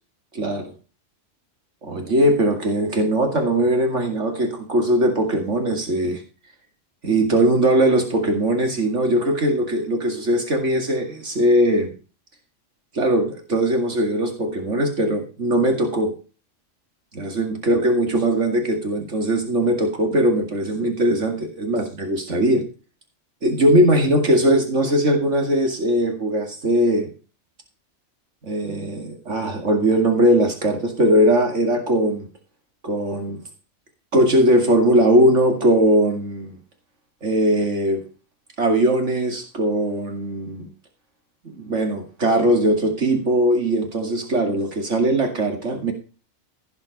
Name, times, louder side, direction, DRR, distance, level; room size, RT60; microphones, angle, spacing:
voice 1, 0.3-0.7 1.8-6.2 7.0-11.9 12.9-16.1 17.1-22.7 23.4-27.1 28.4-32.3 32.8-33.4 34.1-36.5 37.2-38.0 38.6-40.7 41.4-45.9, right 1 dB, 70° right, 4 dB, 2.6 m, -20 dB
16.5 x 6.0 x 5.3 m, 0.35 s
omnidirectional pair, 1.3 m